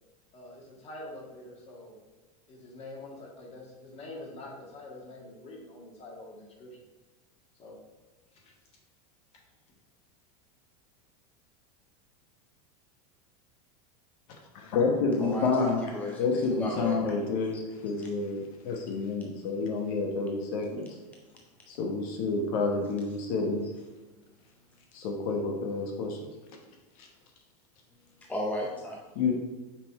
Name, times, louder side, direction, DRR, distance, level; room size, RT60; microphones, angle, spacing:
voice 1, 0.3-2.0 2.5-6.8 7.6-7.8 8.3-8.5, left 2 dB, 30° left, -3 dB, 1.8 m, -45 dB
voice 2, 14.5-15.8 16.2-20.9 21.7-23.7 24.9-26.2 27.0-27.1 29.1-29.3, left 4 dB, 65° left, 1 dB, 1.1 m, -29 dB
voice 3, 15.2-17.0 17.5-17.6 28.3-29.0, left 1 dB, 10° left, -1 dB, 0.6 m, -34 dB
5.7 x 3.6 x 4.7 m, 1.2 s
supercardioid pair, 125°, 20 cm